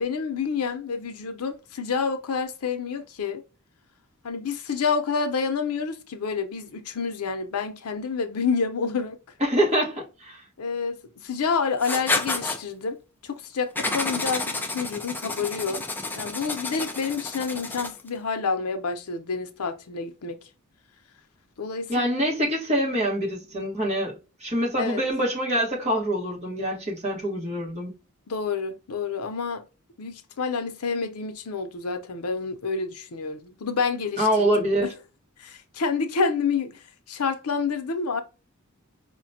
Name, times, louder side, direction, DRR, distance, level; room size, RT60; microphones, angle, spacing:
voice 1, 0.0-3.4 4.2-9.2 10.6-15.8 16.2-20.4 21.6-22.1 24.8-25.0 28.3-29.7 30.0-34.9 35.4-38.2, left 5 dB, 90° left, 0.6 m, -28 dB
voice 2, 9.4-10.4 21.9-27.9 34.2-34.9, equal, 30° right, 1.3 m, -25 dB
Writing, 11.8-12.6 13.8-18.1, left 2 dB, 10° left, 0.4 m, -30 dB
4.9 x 2.2 x 2.6 m
head